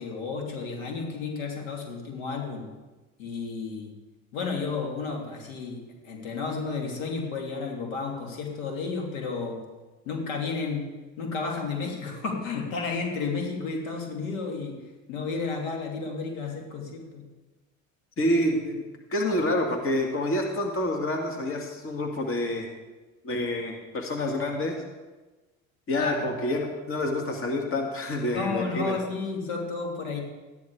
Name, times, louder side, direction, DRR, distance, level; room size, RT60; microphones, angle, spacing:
voice 1, 0.0-2.7 3.2-3.9 4.3-9.6 10.0-10.9 11.2-14.8 15.1-17.2 26.0-26.2 28.3-30.2, left 4 dB, 75° left, 1 dB, 3.0 m, -32 dB
voice 2, 18.2-18.8 19.1-22.7 23.2-24.8 25.9-29.0, left 1 dB, 30° left, 2 dB, 2.2 m, -28 dB
13.0 x 10.5 x 4.8 m, 1.2 s
hypercardioid pair, 80°, 40 cm